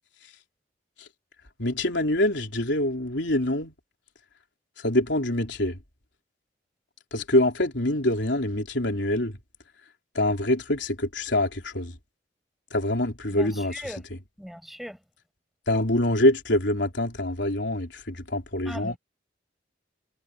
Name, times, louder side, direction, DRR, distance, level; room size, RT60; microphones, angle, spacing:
voice 1, 1.6-3.7 4.8-5.8 7.1-9.4 10.1-12.0 12.7-13.8 15.7-18.9, left 1 dB, 75° left, 3.3 m, -25 dB
voice 2, 13.3-14.0 14.4-15.0 18.6-19.0, equal, ahead, 8.0 m, -38 dB
head